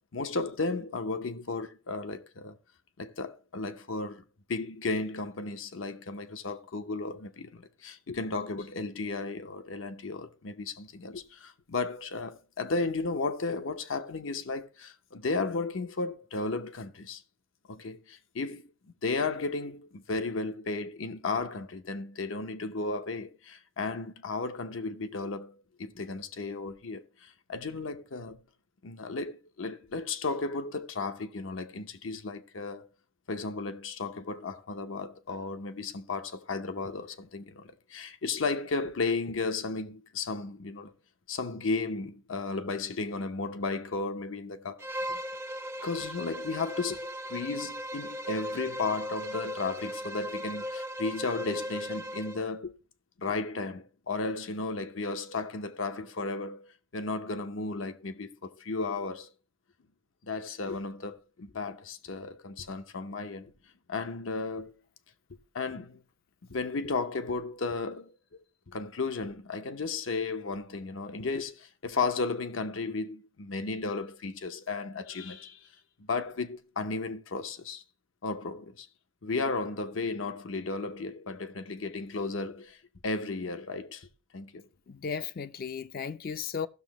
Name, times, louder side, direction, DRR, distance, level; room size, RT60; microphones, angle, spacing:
voice 1, 0.1-2.6 3.0-4.2 4.5-17.2 17.7-18.7 19.0-25.5 25.8-28.4 28.8-32.9 33.3-40.9 41.3-44.8 45.1-45.2 45.8-52.7 53.2-59.3 60.2-63.5 63.9-64.7 65.5-66.0 66.5-68.1 68.7-75.7 76.0-77.8 78.2-78.9 79.2-82.8 83.0-84.1 84.3-84.7, left 3 dB, 85° left, 0.8 m, -34 dB
Bowed string instrument, 44.8-52.5, equal, 15° right, 0.5 m, -37 dB
voice 2, 84.9-86.7, left 6 dB, 50° left, 0.4 m, -35 dB
15.5 x 6.5 x 3.0 m
head